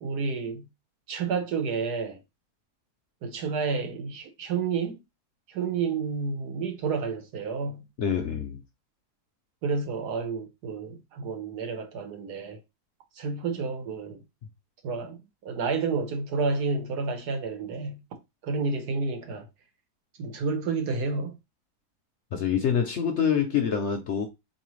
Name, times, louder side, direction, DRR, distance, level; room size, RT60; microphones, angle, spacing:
voice 1, 0.0-0.7 1.1-2.2 3.2-5.0 5.5-7.9 9.6-12.6 13.1-14.2 14.8-18.0 18.4-19.4 20.2-21.3, right 4 dB, 80° right, 1.5 m, -30 dB
voice 2, 8.0-8.6 22.3-24.3, left 7 dB, 65° left, 0.7 m, -26 dB
4.2 x 3.1 x 3.1 m
omnidirectional pair, 1.7 m